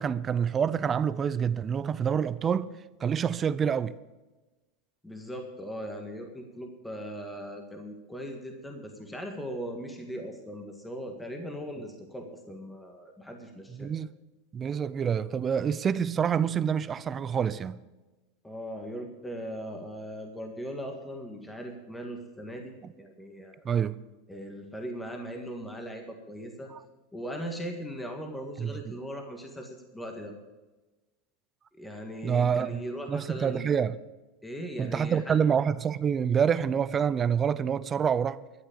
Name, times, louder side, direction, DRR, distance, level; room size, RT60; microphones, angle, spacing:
voice 1, 0.0-2.7 3.0-3.9 13.8-14.1 14.5-17.8 23.6-24.0 26.7-26.8 28.6-29.0 32.2-32.8 33.1-34.0 34.8-38.4, right 7 dB, 25° right, 0.5 m, -27 dB
voice 2, 5.0-13.9 18.4-23.7 24.3-26.7 27.1-30.3 31.8-33.7 34.4-35.3, equal, 5° left, 1.8 m, -39 dB
12.5 x 8.0 x 8.7 m
supercardioid pair, 140°, 0 cm